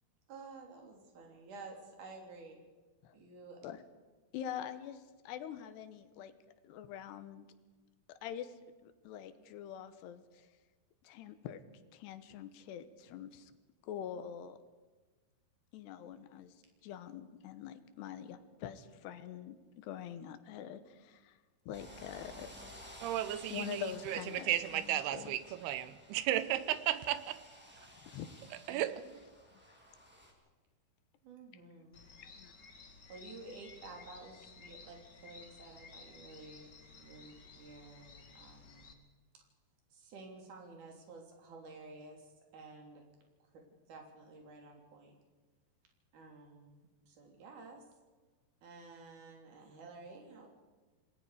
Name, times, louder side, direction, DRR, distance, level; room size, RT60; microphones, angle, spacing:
voice 1, 0.3-2.6 3.1-3.6 28.7-28.8 31.2-32.0 33.1-38.9 39.3-39.4 39.9-43.0 43.5-45.1 46.1-47.9 48.6-50.5, right 3 dB, 50° right, 4.5 m, -52 dB
voice 2, 4.3-6.3 6.6-7.5 8.1-8.5 8.8-10.5 11.0-11.6 11.9-13.5 13.8-14.6 15.7-16.5 16.8-21.4 21.7-22.5 23.5-25.4 28.0-28.3 32.2-32.5, left 9 dB, 90° left, 3.2 m, -45 dB
sound 1, 21.7-30.3, equal, 5° right, 2.7 m, -55 dB
voice 3, 23.0-27.4 28.7-29.0, right 12 dB, 80° right, 2.8 m, -34 dB
sound 2, 31.9-38.9, left 4 dB, 45° left, 1.5 m, -55 dB
27.0 x 19.5 x 4.9 m
omnidirectional pair, 4.7 m